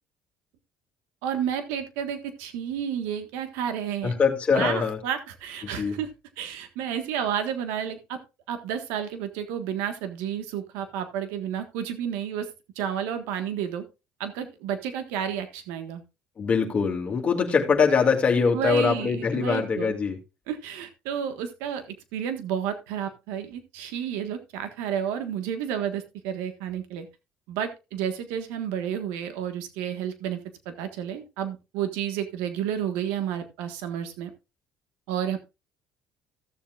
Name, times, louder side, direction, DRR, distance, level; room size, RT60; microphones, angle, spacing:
voice 1, 1.2-4.1 4.5-6.1 6.4-8.2 8.5-12.5 12.7-13.8 14.2-16.0 18.5-19.9 20.5-27.1 27.5-30.4 30.6-34.3 35.1-35.4, right 9 dB, 85° right, 1.5 m, -31 dB
voice 2, 4.0-5.0 5.8-5.9 16.4-20.2, left 5 dB, 35° left, 2.3 m, -23 dB
16.0 x 7.2 x 2.4 m
cardioid pair, 100°, 4 cm